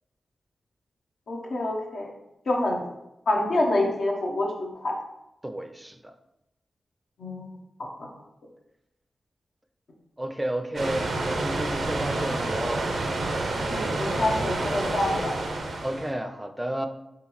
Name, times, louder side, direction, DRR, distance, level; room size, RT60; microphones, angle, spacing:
voice 1, 1.3-2.1 2.5-2.8 3.3-4.9 7.2-7.6 13.5-15.4, left 1 dB, 80° left, -1 dB, 0.8 m, -27 dB
voice 2, 5.4-6.1 10.2-12.9 15.8-16.9, right 1 dB, 15° right, 7 dB, 0.4 m, -32 dB
sound 1, 10.8-16.1, right 2 dB, 85° right, 0.6 m, -29 dB
3.7 x 3.6 x 3.0 m, 0.88 s
cardioid pair, 50°, 0 cm